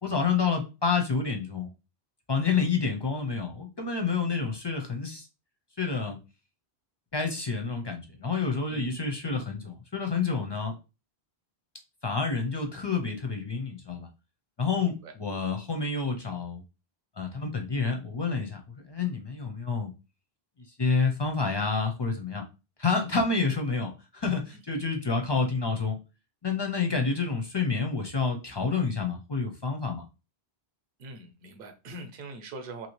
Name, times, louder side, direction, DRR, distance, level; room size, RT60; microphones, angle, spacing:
voice 1, 0.0-1.7 2.3-5.3 5.8-6.2 7.1-10.7 12.0-14.1 14.6-16.6 17.2-18.6 18.9-19.9 20.8-22.4 22.8-26.0 26.4-30.0, left 4 dB, 35° left, 0.4 m, -28 dB
voice 2, 31.0-32.9, right 2 dB, 60° right, 0.8 m, -43 dB
2.8 x 2.7 x 3.0 m
omnidirectional pair, 1.1 m